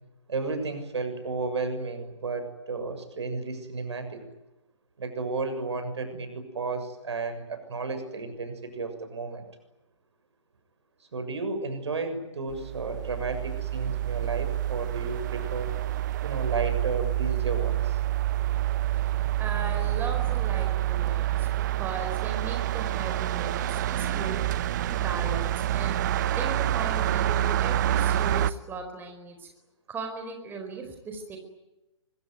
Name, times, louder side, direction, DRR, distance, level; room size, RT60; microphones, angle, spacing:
voice 1, 0.3-4.2 5.0-9.5 11.1-15.7 16.2-18.0, right 3 dB, 65° right, 8 dB, 6.9 m, -33 dB
sound 1, 12.5-28.5, right 13 dB, 40° right, 1.0 m, -27 dB
voice 2, 19.4-24.4 24.9-26.0 26.3-29.5 29.9-31.4, right 4 dB, 15° right, 4 dB, 4.6 m, -37 dB
25.0 x 23.5 x 9.5 m, 0.99 s
figure-of-eight pair, 130°, 16 cm